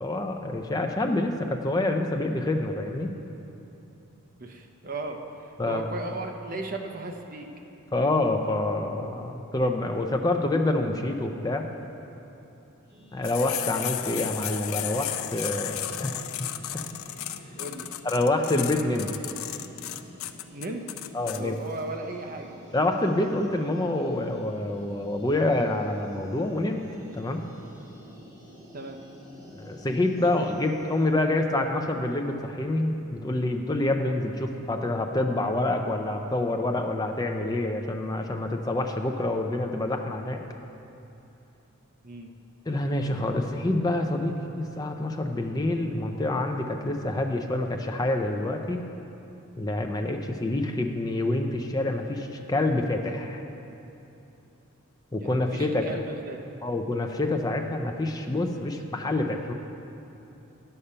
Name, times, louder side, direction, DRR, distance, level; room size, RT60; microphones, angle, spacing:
voice 1, 0.0-3.1 5.6-5.9 7.9-11.6 13.1-16.2 18.0-19.1 21.1-21.6 22.7-26.8 27.2-27.4 29.5-40.4 42.7-48.8 49.6-53.4 55.1-55.9 56.6-59.5, left 2 dB, 15° left, 4 dB, 0.5 m, -27 dB
voice 2, 4.4-5.2 5.7-7.5 17.6-17.9 20.5-20.8 21.4-22.5 28.7-29.0 42.0-42.3 55.2-56.4, right 2 dB, 40° right, 3 dB, 0.7 m, -36 dB
sound 1, 12.8-31.1, equal, 15° right, 2.5 m, -50 dB
sound 2, 13.2-21.4, left 12 dB, 70° left, 0.4 m, -34 dB
9.8 x 6.7 x 5.6 m, 2.9 s
head